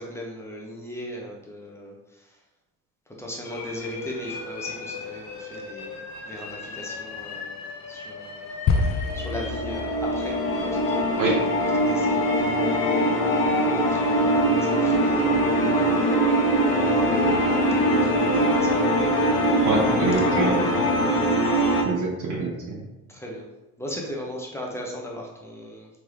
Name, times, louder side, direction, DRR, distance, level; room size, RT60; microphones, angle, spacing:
voice 1, 0.0-2.4 3.1-7.6 7.9-8.5 9.1-11.3 11.6-13.4 13.9-16.0 16.7-18.8 21.4-21.8 23.1-23.5 23.8-25.9, left 1 dB, 5° left, -1 dB, 0.9 m, -38 dB
sound 1, 3.4-13.9, left 3 dB, 50° left, 1.0 m, -35 dB
sound 2, 8.7-13.0, left 4 dB, 30° left, 0.5 m, -29 dB
sound 3, 9.1-21.8, right 1 dB, 75° left, 1.1 m, -22 dB
voice 2, 19.6-20.8 21.8-22.5, right 3 dB, 40° right, -3 dB, 0.9 m, -25 dB
3.4 x 3.0 x 3.4 m, 1.0 s
hypercardioid pair, 70°, 48 cm